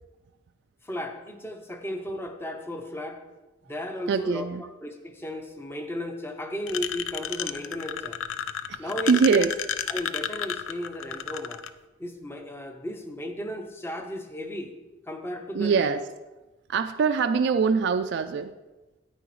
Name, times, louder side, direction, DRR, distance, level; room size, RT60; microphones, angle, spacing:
voice 1, 0.8-3.2 3.6-8.2 8.8-9.5 9.9-11.6 12.0-14.7 15.1-15.9, left 1 dB, 10° left, 5 dB, 0.7 m, -35 dB
voice 2, 4.1-4.6 8.7-9.5 15.5-16.0 16.7-18.5, right 5 dB, 60° right, 8 dB, 0.3 m, -23 dB
sound 1, 6.7-11.7, left 9 dB, 90° left, 0.4 m, -31 dB
9.8 x 9.2 x 3.1 m, 1.1 s
head